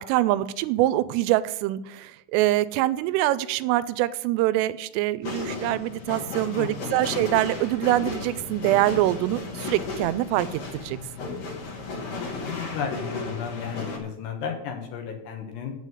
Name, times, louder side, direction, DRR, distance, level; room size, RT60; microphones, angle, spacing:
voice 1, 0.1-11.0, right 15 dB, 90° right, 16 dB, 3.2 m, -24 dB
sound 1, 5.2-14.0, left 3 dB, 55° left, 3.2 m, -34 dB
voice 2, 6.6-7.1 12.0-12.1 12.4-15.7, left 7 dB, 70° left, 3 dB, 2.9 m, -34 dB
8.3 x 7.8 x 7.7 m, 0.83 s
omnidirectional pair, 5.7 m